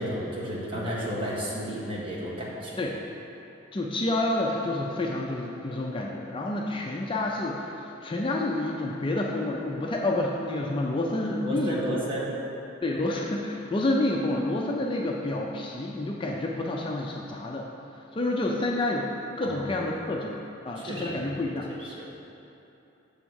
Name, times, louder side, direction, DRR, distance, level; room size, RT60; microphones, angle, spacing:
voice 1, 0.0-2.9 11.4-12.3 19.4-19.6 20.9-21.1 21.5-21.6 21.8-22.0, equal, 25° right, -6 dB, 1.3 m, -32 dB
voice 2, 3.7-12.1 12.8-17.7 18.1-19.1 19.4-22.2, left 2 dB, 25° left, -1 dB, 0.4 m, -29 dB
7.2 x 3.5 x 6.3 m, 2.9 s
head